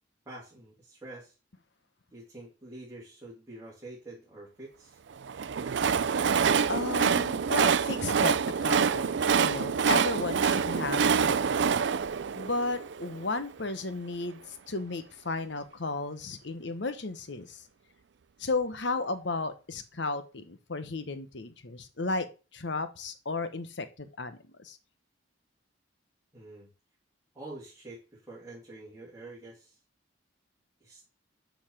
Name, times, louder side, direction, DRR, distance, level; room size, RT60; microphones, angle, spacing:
voice 1, 0.2-1.3 2.1-5.0 26.3-26.7 27.3-29.8 30.8-31.0, right 2 dB, 15° right, 2.9 m, -46 dB
Train, 5.2-13.4, right 6 dB, 65° right, 0.4 m, -26 dB
voice 2, 6.7-11.7 12.3-17.6 18.4-22.3 22.5-24.8, left 3 dB, 65° left, 1.0 m, -34 dB
6.7 x 5.7 x 7.3 m
head